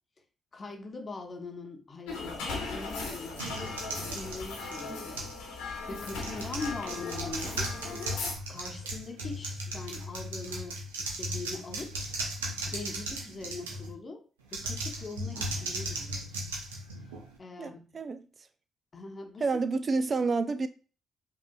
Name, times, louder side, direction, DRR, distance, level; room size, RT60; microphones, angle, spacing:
voice 1, 0.5-5.3 5.9-7.7 8.5-12.0 12.7-16.4 17.4-18.0 18.9-19.5, left 3 dB, 40° left, 0.9 m, -42 dB
sound 1, 2.1-8.3, left 3 dB, 75° left, 1.1 m, -38 dB
sound 2, 3.4-5.4 6.0-13.9 14.4-17.4, right 1 dB, 90° right, 0.7 m, -37 dB
voice 2, 17.6-18.3 19.4-20.7, right 4 dB, 45° right, 0.5 m, -29 dB
5.2 x 2.6 x 2.3 m
hypercardioid pair, 45°, 0 cm